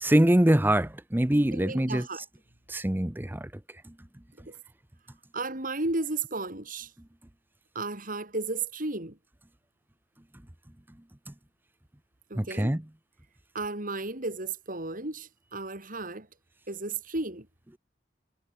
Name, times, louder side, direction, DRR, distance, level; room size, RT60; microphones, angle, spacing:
voice 1, 0.0-2.1 2.7-3.5 3.9-4.0 11.3-11.4 12.3-12.8, right 1 dB, 10° right, 0.8 m, -24 dB
voice 2, 1.5-2.2 4.5-4.6 5.3-6.9 7.7-9.2 12.3-12.7 13.5-16.3 16.7-17.5, right 3 dB, 50° right, 4.8 m, -34 dB
head